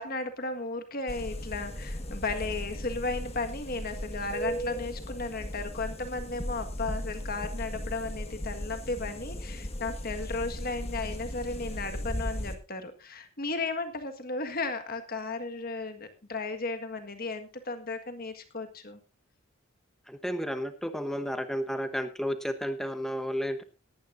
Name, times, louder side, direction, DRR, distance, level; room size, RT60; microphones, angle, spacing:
voice 1, 0.0-19.0, left 3 dB, 45° left, 7 dB, 1.7 m, -35 dB
sound 1, 1.1-12.5, equal, 30° left, 1.4 m, -37 dB
voice 2, 20.1-23.6, equal, ahead, 8 dB, 1.0 m, -32 dB
18.5 x 11.0 x 2.6 m, 0.30 s
head